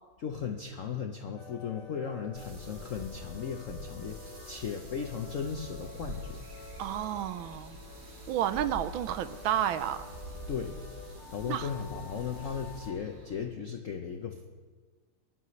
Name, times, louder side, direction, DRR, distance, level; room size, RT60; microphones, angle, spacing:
voice 1, 0.2-6.5 10.5-10.8 11.3-14.5, left 7 dB, 70° left, 4 dB, 0.7 m, -36 dB
sound 1, 1.4-13.0, left 6 dB, 90° left, 1.6 m, -50 dB
sound 2, 2.3-12.9, right 1 dB, 30° right, 1.2 m, -46 dB
sound 3, 5.4-13.4, equal, 50° right, 2.1 m, -53 dB
voice 2, 6.8-7.8 8.3-10.0 11.5-11.7, right 11 dB, 75° right, 12 dB, 1.3 m, -31 dB
21.0 x 11.0 x 3.2 m, 1.4 s
omnidirectional pair, 2.3 m